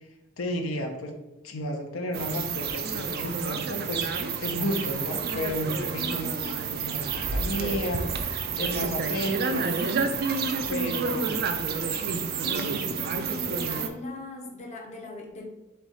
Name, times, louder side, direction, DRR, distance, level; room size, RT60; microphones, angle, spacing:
voice 1, 0.4-1.2 1.4-4.1 4.4-6.3 6.8-9.7 10.7-11.3, left 1 dB, 80° left, 3 dB, 0.6 m, -32 dB
sound 1, 2.1-13.9, right 5 dB, 50° right, 0.4 m, -29 dB
voice 2, 6.0-6.6 11.0-11.3 12.4-15.5, left 2 dB, 35° left, 1 dB, 0.6 m, -39 dB
3.6 x 3.2 x 4.0 m, 1.0 s
head